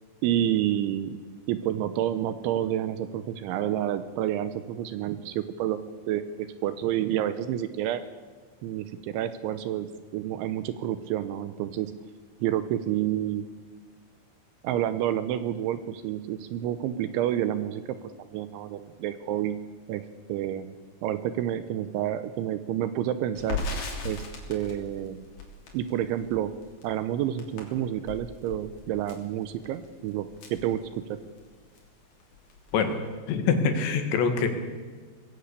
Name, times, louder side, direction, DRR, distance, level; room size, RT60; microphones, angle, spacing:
voice 1, 0.2-1.2 1.5-5.8 6.1-8.0 8.6-9.9 10.1-11.9 12.4-13.5 14.6-17.8 18.3-19.6 19.9-20.0 20.3-20.7 21.0-23.6 24.0-25.2 25.7-26.5 26.8-30.8 31.1-31.2, right 11 dB, 80° right, 12 dB, 3.0 m, -29 dB
Crackle, 23.4-31.4 31.8-31.9 32.2-32.9, left 3 dB, 50° left, 4.6 m, -38 dB
voice 2, 33.3-34.5, left 5 dB, 65° left, 6 dB, 3.7 m, -24 dB
20.5 x 16.5 x 8.3 m, 1.5 s
omnidirectional pair, 5.8 m